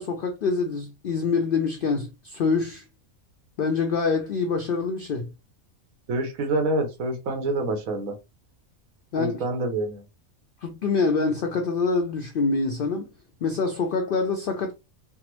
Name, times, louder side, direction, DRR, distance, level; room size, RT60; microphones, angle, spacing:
voice 1, 0.0-2.8 3.6-5.3 9.1-9.4 10.6-13.1 13.4-14.7, left 4 dB, 75° left, 0.5 m, -25 dB
voice 2, 6.1-8.1 9.2-10.0, right 2 dB, 75° right, 1.2 m, -27 dB
3.4 x 2.0 x 2.9 m
omnidirectional pair, 1.5 m